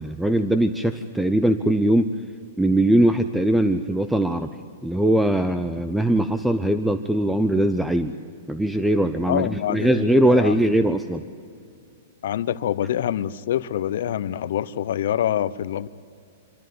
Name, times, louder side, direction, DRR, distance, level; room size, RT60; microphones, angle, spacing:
voice 1, 0.0-2.1 2.6-4.5 4.8-8.1 8.5-11.2, right 1 dB, 5° right, 10 dB, 0.6 m, -21 dB
voice 2, 9.3-10.5 12.2-15.9, left 11 dB, 65° left, 16 dB, 0.7 m, -25 dB
26.0 x 13.5 x 9.4 m, 2.4 s
hypercardioid pair, 155°, 0 cm